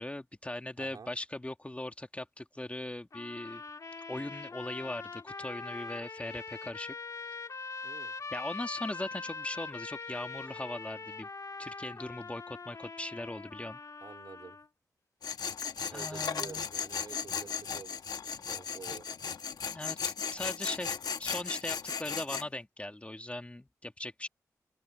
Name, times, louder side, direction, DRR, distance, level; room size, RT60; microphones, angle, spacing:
voice 1, 0.0-3.6 4.1-7.0 8.3-11.3 11.6-13.8 15.9-16.7 19.7-24.3, left 1 dB, 20° left, 2.4 m, -39 dB
voice 2, 0.8-1.1 7.8-8.1 14.0-14.6 15.9-18.0 18.4-19.1, right 5 dB, 70° right, 3.4 m, -48 dB
sound 1, 3.1-14.7, left 4 dB, 55° left, 2.0 m, -43 dB
Tools, 15.2-22.5, left 6 dB, 80° left, 1.3 m, -36 dB
cardioid pair, 50°, 7 cm